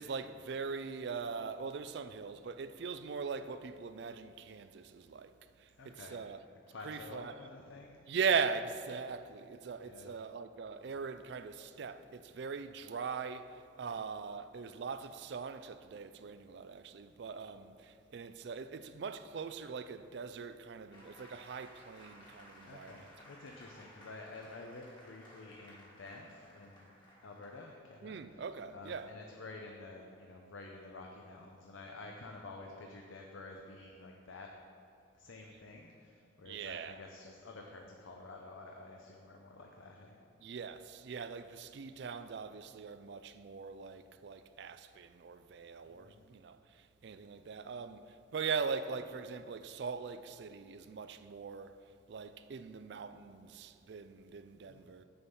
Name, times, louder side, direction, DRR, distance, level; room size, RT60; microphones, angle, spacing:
voice 1, 0.0-6.4 6.8-7.4 8.1-23.0 28.0-29.1 36.5-37.0 40.4-51.8 52.1-55.0, right 5 dB, 55° right, 0.3 m, -40 dB
voice 2, 5.7-6.2 6.7-8.0 9.8-10.1 13.8-14.0 17.6-17.7 22.6-26.9 27.2-28.4 28.7-34.5 35.1-40.2 45.9-46.2 54.7-54.9, left 3 dB, 80° left, 0.6 m, -50 dB
sound 1, 20.9-28.0, equal, 25° left, 1.5 m, -58 dB
6.9 x 5.4 x 7.1 m
head